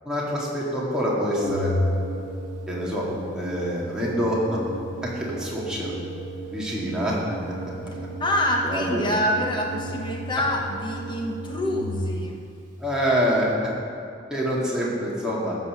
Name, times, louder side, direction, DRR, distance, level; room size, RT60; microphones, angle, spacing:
voice 1, 0.0-1.7 2.7-3.1 3.3-4.6 5.0-5.9 6.5-7.2 8.6-9.1 12.8-13.7 14.3-15.6, equal, 5° right, -6 dB, 2.0 m, -26 dB
Organ, 1.4-12.4, equal, 45° right, 1.7 m, -33 dB
voice 2, 8.2-12.4, left 1 dB, 25° left, 0 dB, 1.0 m, -26 dB
14.0 x 5.6 x 6.6 m, 2.5 s
head